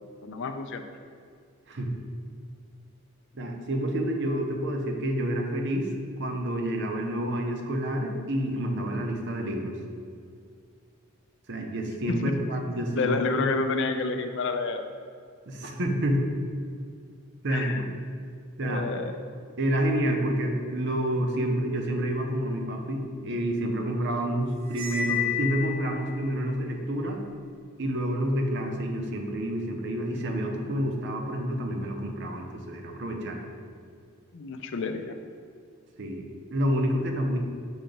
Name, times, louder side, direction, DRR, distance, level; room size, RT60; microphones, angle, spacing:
voice 1, 0.2-0.8 12.9-14.8 17.5-17.9 18.6-19.2 34.3-35.1, left 3 dB, 55° left, 7 dB, 0.4 m, -29 dB
voice 2, 3.3-5.9 6.2-9.7 11.5-13.5 15.5-16.2 17.4-17.9 18.6-18.9 19.6-27.2 27.8-33.4 36.0-36.3 36.5-37.4, right 1 dB, 55° right, 3 dB, 0.7 m, -28 dB
Cymbal, 24.7-26.1, left 8 dB, 75° right, 1.1 m, -30 dB
6.3 x 2.9 x 5.1 m, 2.2 s
head